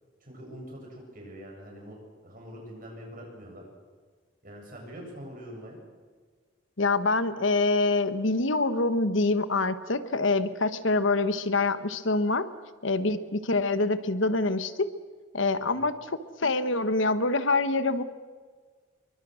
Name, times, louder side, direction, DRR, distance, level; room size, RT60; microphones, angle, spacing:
voice 1, 0.2-2.0 2.2-3.6 4.4-5.8 15.7-15.8, equal, 45° right, 0 dB, 7.6 m, -44 dB
voice 2, 6.8-12.5 12.8-14.9 15.3-18.0, left 3 dB, 70° left, 13 dB, 1.2 m, -25 dB
26.0 x 24.0 x 6.4 m, 1.5 s
head